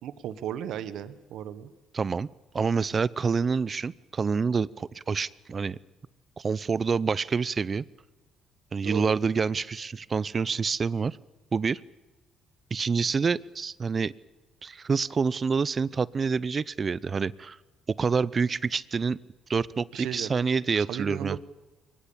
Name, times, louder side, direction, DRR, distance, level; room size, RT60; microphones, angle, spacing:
voice 1, 0.0-1.7 8.8-9.2 19.9-20.3 20.7-21.4, right 10 dB, 75° right, 13 dB, 1.4 m, -35 dB
voice 2, 1.9-2.3 2.5-5.8 6.4-7.8 8.7-11.2 11.5-11.8 12.7-14.1 14.6-17.6 17.9-19.2 19.5-21.4, right 5 dB, 35° right, 21 dB, 0.7 m, -27 dB
23.0 x 20.0 x 8.7 m, 1.1 s
cardioid pair, 80°, 0 cm